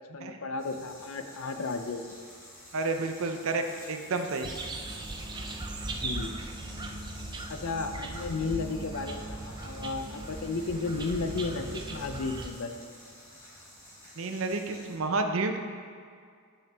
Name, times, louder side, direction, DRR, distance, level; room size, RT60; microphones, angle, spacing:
voice 1, 0.0-2.1 5.8-6.3 7.5-12.9, left 4 dB, 70° left, 7 dB, 0.5 m, -34 dB
sound 1, 0.6-15.0, left 1 dB, 15° left, 1.9 m, -50 dB
voice 2, 2.7-4.5 14.2-15.6, right 3 dB, 65° right, 6 dB, 0.6 m, -30 dB
sound 2, 4.4-12.5, right 2 dB, 20° right, 0.3 m, -38 dB
8.4 x 5.8 x 3.4 m, 2.2 s
head